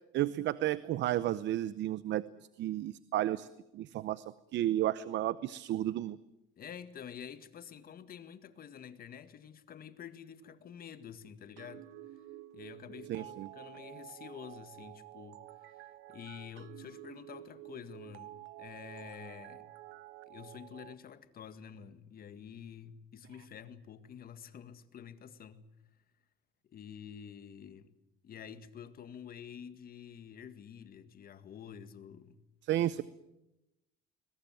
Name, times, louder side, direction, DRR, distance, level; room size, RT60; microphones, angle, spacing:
voice 1, 0.1-2.2 2.6-3.5 3.7-4.2 4.5-6.2 13.1-13.5 32.7-33.0, right 13 dB, 65° right, 0.8 m, -32 dB
voice 2, 6.6-11.9 12.5-19.7 20.3-25.7 26.7-27.9 28.2-32.4 32.8-33.0, left 8 dB, 50° left, 1.9 m, -49 dB
sound 1, 11.6-20.9, right 15 dB, 80° right, 1.1 m, -50 dB
22.0 x 21.0 x 9.1 m
cardioid pair, 105°, 20 cm